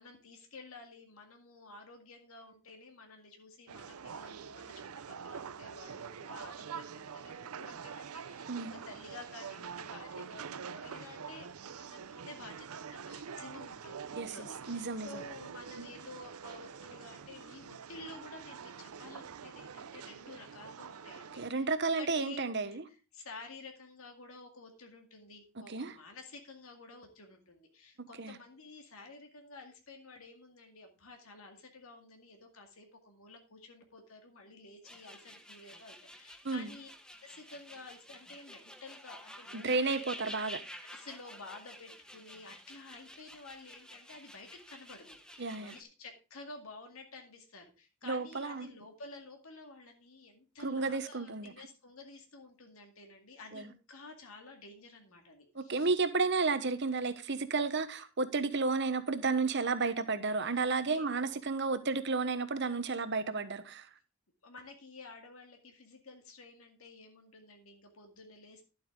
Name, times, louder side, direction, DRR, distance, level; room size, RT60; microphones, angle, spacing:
voice 1, 0.0-22.4 22.9-36.9 37.2-40.6 40.8-55.9 60.8-61.4 64.4-68.7, left 3 dB, 75° left, 2.2 m, -52 dB
sound 1, 3.7-21.5, right 6 dB, 90° right, 0.6 m, -46 dB
voice 2, 14.2-15.2 15.8-15.9 21.4-22.8 25.6-25.9 28.2-28.4 36.4-36.7 39.5-40.6 45.4-45.8 48.0-48.7 50.6-51.5 53.5-53.7 55.5-63.9, right 4 dB, 55° right, 1.1 m, -32 dB
sound 2, 34.8-45.8, equal, 5° left, 0.9 m, -50 dB
11.5 x 8.2 x 3.7 m
head